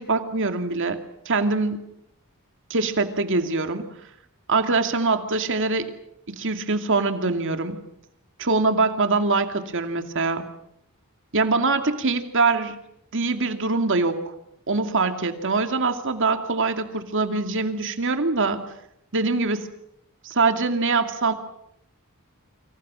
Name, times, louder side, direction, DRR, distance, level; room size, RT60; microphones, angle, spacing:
voice 1, 0.0-1.8 2.7-3.9 4.5-5.9 6.3-7.8 8.4-10.4 11.3-12.8 13.1-14.3 14.7-18.6 19.1-19.7 20.2-21.3, right 3 dB, 60° right, 7 dB, 2.5 m, -23 dB
29.5 x 25.5 x 6.3 m, 0.76 s
head